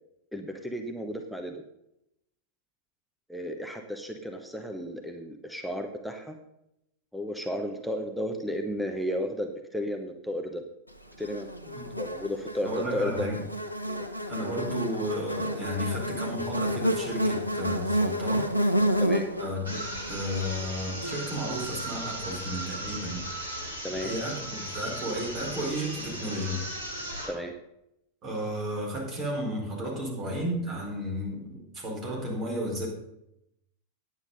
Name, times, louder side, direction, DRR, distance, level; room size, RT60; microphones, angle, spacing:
voice 1, 0.3-1.6 3.3-6.4 7.1-10.6 11.2-11.7 12.0-13.4 13.9-14.0 19.0-19.3 23.8-24.1 27.3-27.5, equal, ahead, 3 dB, 1.0 m, -33 dB
Buzz, 11.2-21.6, equal, 90° left, 0.8 m, -30 dB
voice 2, 12.6-13.4 14.3-18.5 19.4-19.8 20.1-23.2 24.0-26.7 28.2-32.9, equal, 30° right, -1 dB, 4.5 m, -33 dB
sound 1, 19.6-27.4, right 1 dB, 75° right, 3.0 m, -37 dB
9.6 x 9.4 x 5.4 m, 0.82 s
figure-of-eight pair, 90°, 0 cm